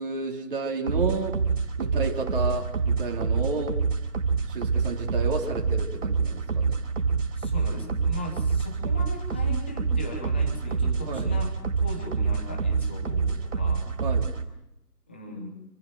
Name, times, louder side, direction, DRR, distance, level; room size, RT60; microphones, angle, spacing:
voice 1, 0.0-1.4 1.8-3.8 4.5-6.8 11.1-11.3 14.0-14.3, right 3 dB, 35° right, -1 dB, 3.7 m, -31 dB
sound 1, 0.9-14.4, right 5 dB, 55° right, 4.3 m, -27 dB
voice 2, 7.3-13.9 15.1-15.5, left 1 dB, 5° left, 4 dB, 1.2 m, -38 dB
27.0 x 15.0 x 9.1 m, 0.89 s
figure-of-eight pair, 165°, 47 cm